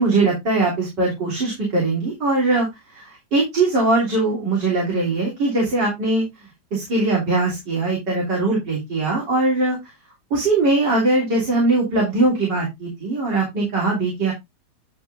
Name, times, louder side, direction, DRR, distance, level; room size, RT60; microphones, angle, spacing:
voice 1, 0.0-9.9 10.3-14.3, right 2 dB, 70° right, -3 dB, 4.0 m, -21 dB
10.5 x 7.4 x 2.6 m, 0.20 s
omnidirectional pair, 1.9 m